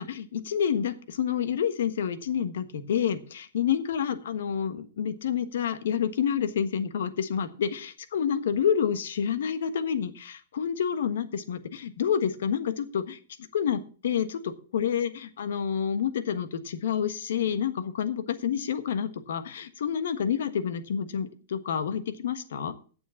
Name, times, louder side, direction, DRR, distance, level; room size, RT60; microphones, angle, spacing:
voice 1, 0.0-13.2 13.5-22.7, left 8 dB, 75° left, 11 dB, 1.4 m, -28 dB
8.7 x 7.1 x 7.2 m, 0.39 s
hypercardioid pair, 140°, 0 cm